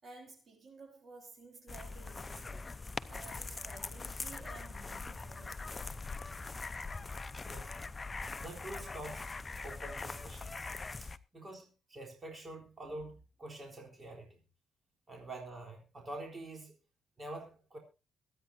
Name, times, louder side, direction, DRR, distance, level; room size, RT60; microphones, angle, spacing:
voice 1, 0.0-2.7 3.1-5.9, right 4 dB, 45° right, 4.2 m, -54 dB
sound 1, 1.7-11.2, left 3 dB, 25° left, 0.7 m, -42 dB
voice 2, 7.4-7.8 8.4-9.3 9.6-10.7 11.0-14.4 15.1-16.8 17.2-17.8, right 1 dB, 25° right, 3.9 m, -46 dB
23.5 x 9.4 x 2.7 m
cardioid pair, 90°, 0 cm